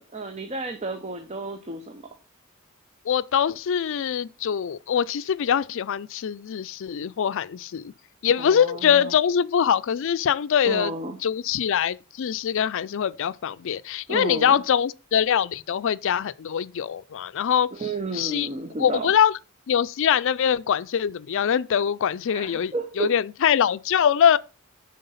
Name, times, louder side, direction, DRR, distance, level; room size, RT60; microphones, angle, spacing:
voice 1, 0.0-2.0 8.4-9.1 10.6-11.2 14.1-14.6 17.8-19.1 22.3-23.1, right 3 dB, 30° right, 0.7 m, -32 dB
voice 2, 3.1-7.9 8.2-10.9 11.2-17.7 18.1-18.5 18.8-19.3 19.7-24.4, left 8 dB, 65° left, 0.4 m, -23 dB
9.4 x 3.9 x 5.6 m
head